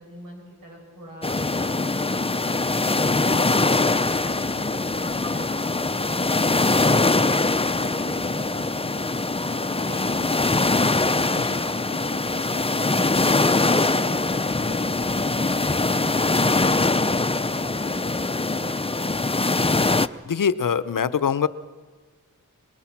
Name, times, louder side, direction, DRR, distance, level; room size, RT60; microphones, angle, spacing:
voice 1, 0.0-9.2 9.6-10.8 11.1-19.2, right 1 dB, 90° right, -1 dB, 7.9 m, -43 dB
sound 1, 1.2-20.1, left 3 dB, 20° left, 0.6 m, -22 dB
voice 2, 20.3-21.5, left 7 dB, 80° left, 15 dB, 0.9 m, -23 dB
26.5 x 20.0 x 6.0 m, 1.3 s
wide cardioid pair, 60°, 32 cm